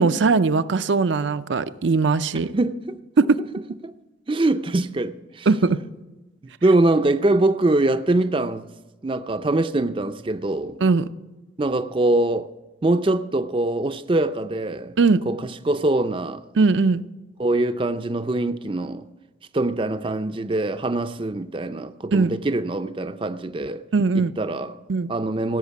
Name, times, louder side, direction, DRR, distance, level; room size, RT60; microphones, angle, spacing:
voice 1, 0.0-2.5 3.2-3.4 5.5-5.8 10.8-11.1 15.0-15.2 16.6-17.0 22.1-22.3 23.9-24.3 24.9-25.1, right 4 dB, 75° right, 0.5 m, -19 dB
voice 2, 2.5-3.0 3.8-3.9 4.3-5.5 6.6-8.7 9.0-10.8 11.6-12.5 12.8-14.9 15.3-16.4 17.4-19.0 19.5-23.8 24.1-24.8 25.1-25.6, right 2 dB, 25° right, 0.4 m, -23 dB
16.5 x 6.5 x 8.2 m
head